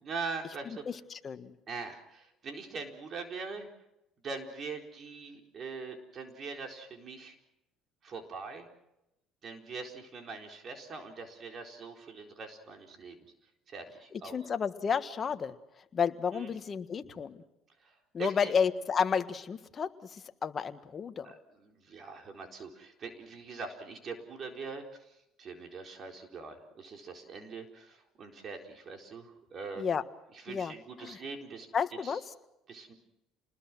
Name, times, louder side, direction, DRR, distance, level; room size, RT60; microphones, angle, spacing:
voice 1, 0.0-0.8 1.7-3.7 4.2-7.3 8.0-8.7 9.4-13.2 13.7-14.4 16.3-16.5 17.8-17.9 18.2-18.5 21.2-24.8 25.4-29.8 30.4-31.7 32.0-32.2 32.7-32.9, right 4 dB, 45° right, 3 dB, 4.2 m, -42 dB
voice 2, 0.6-1.5 14.1-15.5 15.9-17.4 18.1-21.3 29.8-30.0 30.5-31.2 31.7-32.3, left 6 dB, 35° left, 9 dB, 1.5 m, -32 dB
28.5 x 20.5 x 6.2 m, 0.89 s
supercardioid pair, 100°, 0 cm